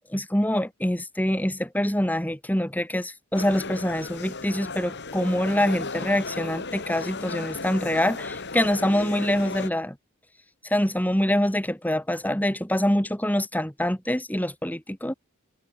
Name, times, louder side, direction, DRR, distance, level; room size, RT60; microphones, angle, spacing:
voice 1, 0.1-10.0 10.7-15.1, left 1 dB, 10° left, 3.8 m, -25 dB
sound 1, 3.3-9.7, left 3 dB, 55° left, 3.2 m, -35 dB
head